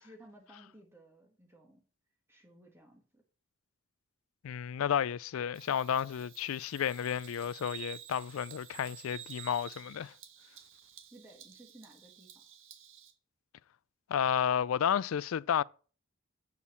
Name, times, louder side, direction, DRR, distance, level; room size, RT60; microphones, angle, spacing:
voice 1, 0.0-1.8 2.3-3.2 11.1-12.4, right 1 dB, 10° right, 1.7 m, -57 dB
voice 2, 4.4-10.1 14.1-15.6, left 8 dB, 80° left, 0.3 m, -32 dB
Bird vocalization bird call bird song, 5.5-13.1, right 10 dB, 70° right, 1.6 m, -51 dB
7.3 x 6.3 x 7.1 m
head